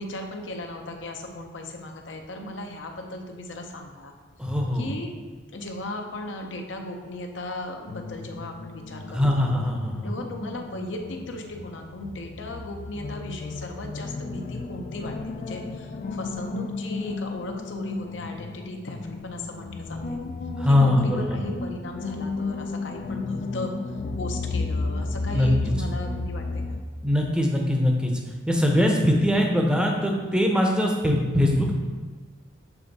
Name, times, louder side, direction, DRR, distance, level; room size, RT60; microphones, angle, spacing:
voice 1, 0.0-4.1 4.7-5.1 5.5-9.5 10.0-20.2 20.7-23.7 24.2-26.8, left 1 dB, 70° left, 3 dB, 0.7 m, -36 dB
voice 2, 4.4-4.9 9.1-10.1 20.6-21.4 25.3-25.5 27.0-28.1 28.5-31.7, left 1 dB, 5° right, 1 dB, 0.7 m, -22 dB
sound 1, 7.9-26.8, left 3 dB, 45° left, 0.3 m, -33 dB
7.0 x 3.4 x 4.0 m, 1.4 s
head